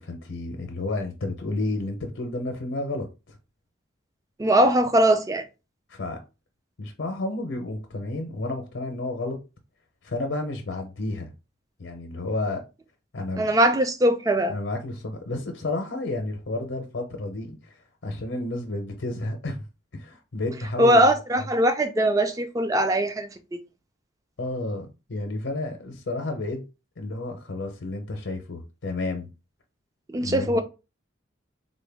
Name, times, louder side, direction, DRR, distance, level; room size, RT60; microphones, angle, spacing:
voice 1, 0.0-3.4 5.9-6.2 6.8-9.4 10.0-11.3 11.8-12.6 13.1-13.5 14.5-17.7 18.0-19.6 19.9-21.1 24.4-26.7 27.0-29.3 30.2-30.6, left 2 dB, 75° left, 0.6 m, -31 dB
voice 2, 4.4-5.4 13.4-14.5 20.8-23.3 30.1-30.6, right 1 dB, 20° right, 0.3 m, -20 dB
3.8 x 2.2 x 3.3 m
head